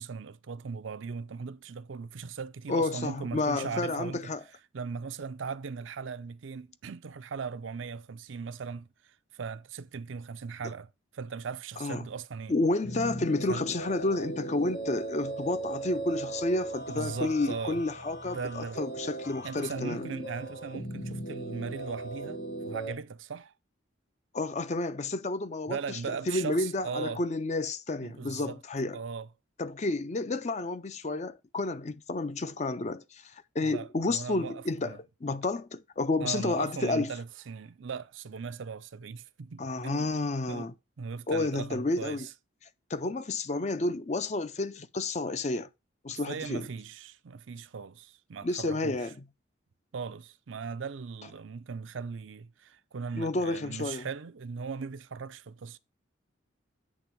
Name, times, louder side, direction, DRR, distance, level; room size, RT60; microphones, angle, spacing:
voice 1, 0.0-4.3 4.7-10.9 11.1-12.5 13.5-13.7 16.9-17.8 18.3-18.8 19.4-23.5 25.7-27.2 28.0-28.6 28.9-29.3 33.6-35.0 36.2-40.1 40.5-40.7 41.0-42.3 46.1-49.0 49.9-55.8, right 5 dB, 75° right, 0.5 m, -38 dB
voice 2, 2.7-4.4 11.8-12.0 12.5-20.1 24.3-29.0 29.6-37.1 39.6-40.7 41.3-42.3 42.9-45.7 46.0-46.7 48.4-49.3 53.1-54.1, left 2 dB, 35° left, 0.5 m, -31 dB
sound 1, 12.8-22.9, right 2 dB, 55° left, 3.7 m, -38 dB
8.4 x 3.4 x 5.9 m
head